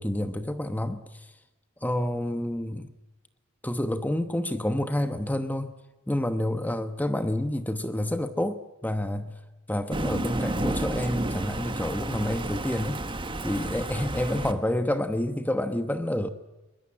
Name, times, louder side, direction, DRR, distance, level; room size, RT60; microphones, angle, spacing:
voice 1, 0.0-1.3 1.8-2.9 3.6-5.7 6.1-9.4 9.7-13.0 13.4-16.3, left 1 dB, 10° left, 9 dB, 1.0 m, -28 dB
Thunder, 9.9-14.5, right 2 dB, 25° right, 1.4 m, -31 dB
23.0 x 20.5 x 8.8 m, 1.1 s
head